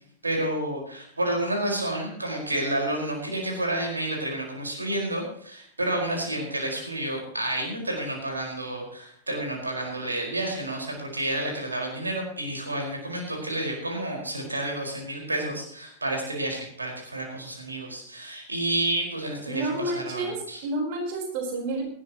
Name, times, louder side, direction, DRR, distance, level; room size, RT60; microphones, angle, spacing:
voice 1, 0.2-20.6, right 1 dB, 80° right, 0 dB, 5.1 m, -30 dB
voice 2, 19.5-20.4 20.6-21.8, right 2 dB, 50° right, 1 dB, 4.4 m, -29 dB
19.0 x 15.0 x 3.1 m, 0.64 s
figure-of-eight pair, 90°, 0 cm